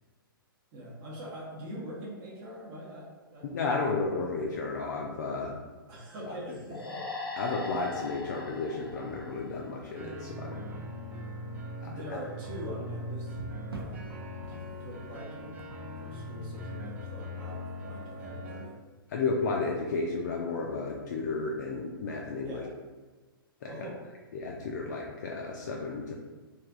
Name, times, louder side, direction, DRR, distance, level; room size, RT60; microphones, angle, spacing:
voice 1, 0.7-3.8 5.9-7.0 11.8-13.4 13.7-14.0 14.5-15.6 16.0-18.8 22.4-22.7 23.7-24.0, right 1 dB, 30° right, -6 dB, 0.8 m, -43 dB
voice 2, 3.4-5.5 7.4-10.6 11.8-12.2 19.1-22.6 23.6-23.7 24.3-26.1, left 3 dB, 50° left, -1 dB, 0.4 m, -33 dB
sound 1, 6.7-10.2, left 3 dB, 85° left, 0.7 m, -40 dB
sound 2, 6.9-7.0 9.2-10.0 10.6-10.8 13.2-16.9 20.8-21.0, right 2 dB, 90° right, 0.5 m, -47 dB
sound 3, 9.9-18.6, left 1 dB, 15° right, 0.4 m, -40 dB
3.2 x 2.3 x 2.5 m, 1.3 s
figure-of-eight pair, 115°, 12 cm